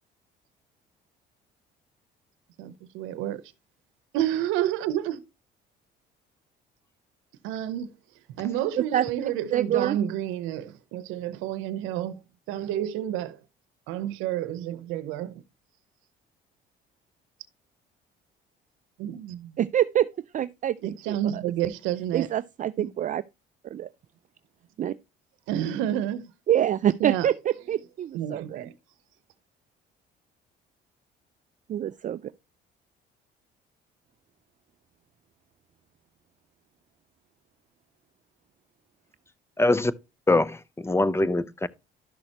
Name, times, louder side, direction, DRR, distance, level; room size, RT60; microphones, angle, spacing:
voice 1, 2.6-3.5 4.1-5.2 7.4-13.4 13.9-15.4 19.0-19.6 20.8-22.3 22.8-22.9 25.5-26.3 27.0-27.3 28.1-28.7, right 11 dB, 85° right, 0.8 m, -30 dB
voice 2, 9.5-10.0 19.6-20.1 20.3-21.2 22.1-23.2 23.6-23.9 24.8-25.0 26.5-27.3 27.7-28.6 31.7-32.2, right 11 dB, 40° right, 0.4 m, -25 dB
voice 3, 39.6-39.9 40.3-41.7, left 2 dB, 10° left, 0.6 m, -23 dB
12.0 x 6.3 x 2.9 m
supercardioid pair, 75°, 20 cm